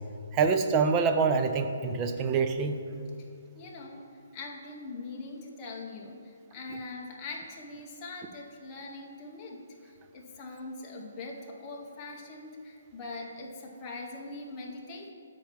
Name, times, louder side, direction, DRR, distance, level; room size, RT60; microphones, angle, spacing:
voice 1, 0.3-2.7, right 5 dB, 15° right, 7 dB, 0.3 m, -25 dB
voice 2, 3.5-4.1 4.3-15.1, left 3 dB, 20° left, -2 dB, 0.7 m, -42 dB
7.6 x 4.5 x 5.8 m, 2.4 s
hypercardioid pair, 170°, 0 cm